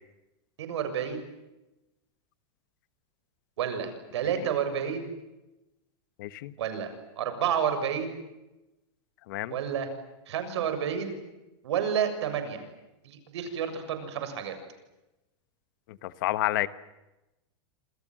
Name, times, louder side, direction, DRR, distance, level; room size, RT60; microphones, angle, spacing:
voice 1, 0.6-1.3 3.6-5.1 6.6-8.2 9.5-9.9 10.3-11.2 11.6-12.6 13.0-14.6, right 8 dB, 75° right, 9 dB, 7.0 m, -30 dB
voice 2, 6.2-6.5 9.3-9.6 15.9-16.7, left 17 dB, 45° left, 15 dB, 1.3 m, -29 dB
28.5 x 27.0 x 7.8 m, 0.99 s
supercardioid pair, 175°, 15 cm